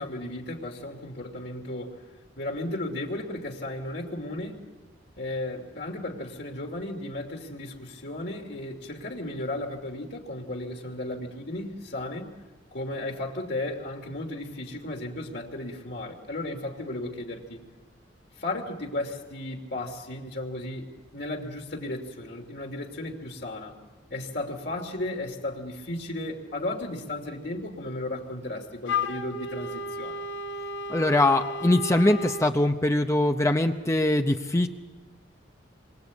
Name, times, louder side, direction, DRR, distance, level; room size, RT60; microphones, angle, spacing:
voice 1, 0.0-2.1 2.4-4.6 5.2-12.3 12.7-17.6 18.3-23.7 24.1-30.2, left 1 dB, 60° left, 1 dB, 2.8 m, -35 dB
Wind instrument woodwind instrument, 28.9-32.5, left 3 dB, 90° left, 1.4 m, -33 dB
voice 2, 30.9-34.7, left 1 dB, 15° left, 6 dB, 0.8 m, -22 dB
28.0 x 24.0 x 8.3 m, 1.3 s
head